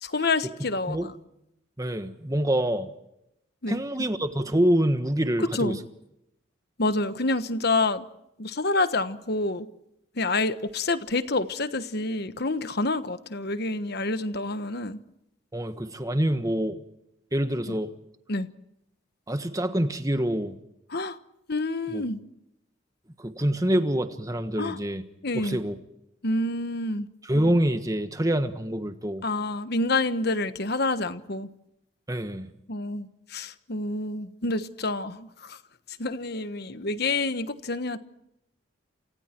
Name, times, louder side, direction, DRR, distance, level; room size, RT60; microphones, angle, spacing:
voice 1, 0.0-1.1 3.6-4.1 5.4-5.8 6.8-8.1 8.4-9.7 10.2-15.0 18.3-18.5 20.9-21.2 21.5-22.2 24.6-24.8 25.2-25.6 26.2-27.1 29.2-31.5 32.7-35.6 36.0-38.0, left 2 dB, 50° left, 1.3 m, -28 dB
voice 2, 1.8-2.9 3.7-5.8 15.5-16.8 17.3-17.9 19.3-20.6 21.9-22.0 23.2-25.0 25.3-25.8 27.3-29.2 32.1-32.5, right 1 dB, 15° right, 1.4 m, -26 dB
28.5 x 27.5 x 4.6 m
head